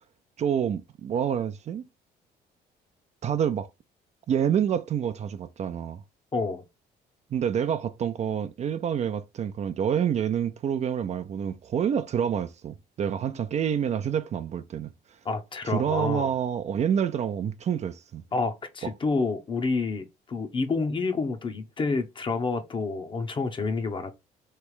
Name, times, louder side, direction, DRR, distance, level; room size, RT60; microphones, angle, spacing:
voice 1, 0.4-1.9 3.2-3.7 4.3-6.0 7.3-14.9 15.6-18.2, right 8 dB, 40° right, 0.5 m, -27 dB
voice 2, 6.3-6.6 15.2-16.3 18.3-24.1, left 4 dB, 30° left, 0.8 m, -29 dB
3.3 x 3.0 x 4.7 m
cardioid pair, 110°, 17 cm